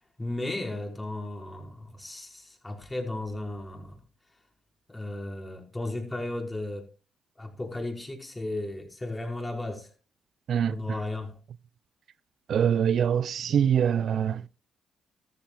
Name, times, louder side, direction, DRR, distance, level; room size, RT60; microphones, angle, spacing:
voice 1, 0.2-4.0 4.9-6.9 7.4-9.9 10.7-11.4, left 2 dB, 20° left, 5.2 m, -35 dB
voice 2, 10.5-11.0 12.5-14.4, right 8 dB, 65° right, 0.5 m, -24 dB
14.5 x 14.0 x 2.5 m
supercardioid pair, 60°, 0 cm